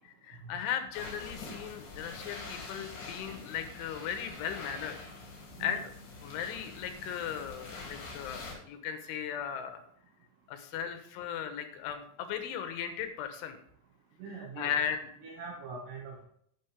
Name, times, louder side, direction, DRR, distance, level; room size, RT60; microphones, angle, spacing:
voice 1, 0.2-5.0 5.6-5.8 6.2-9.8 10.5-13.6 14.6-15.0, left 8 dB, 80° left, 8 dB, 3.3 m, -37 dB
sound 1, 0.9-8.5, left 3 dB, 60° left, 4.5 m, -45 dB
voice 2, 14.2-14.7 15.2-16.2, right 4 dB, 65° right, -2 dB, 3.3 m, -43 dB
11.5 x 8.7 x 3.5 m, 0.67 s
omnidirectional pair, 5.7 m